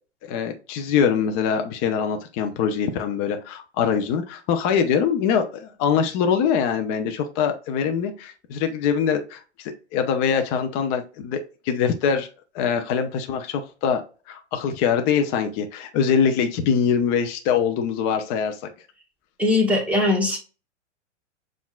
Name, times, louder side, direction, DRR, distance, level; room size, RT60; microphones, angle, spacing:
voice 1, 0.3-12.3 12.5-14.0 14.3-18.6, left 7 dB, 30° left, 6 dB, 0.5 m, -23 dB
voice 2, 19.4-20.4, left 2 dB, 5° right, -1 dB, 1.2 m, -20 dB
6.9 x 2.5 x 2.2 m, 0.35 s
figure-of-eight pair, 100°, 36 cm